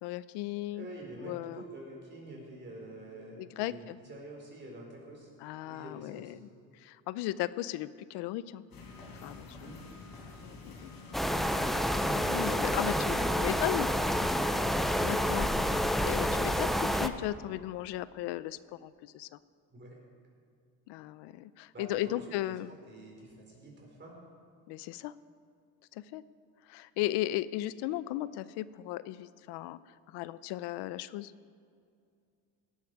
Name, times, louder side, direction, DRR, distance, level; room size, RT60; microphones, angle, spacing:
voice 1, 0.0-0.9 1.2-1.6 3.4-4.0 5.4-6.5 6.7-8.6 9.1-9.8 10.4-10.9 12.1-13.9 15.0-15.5 15.8-19.3 20.9-22.7 24.7-25.1 25.9-26.2 26.7-31.3, left 15 dB, 85° left, 16 dB, 0.6 m, -36 dB
voice 2, 0.7-5.3 5.6-6.4 9.6-9.8 12.6-13.2 19.7-20.0 21.7-22.4 22.9-24.1, right 1 dB, 25° right, -2 dB, 4.3 m, -47 dB
sound 1, 8.7-16.4, left 3 dB, 60° left, 4.5 m, -48 dB
sound 2, 11.1-17.1, equal, ahead, 0.4 m, -29 dB
17.5 x 12.0 x 4.7 m, 2.3 s
cardioid pair, 130°, 40 cm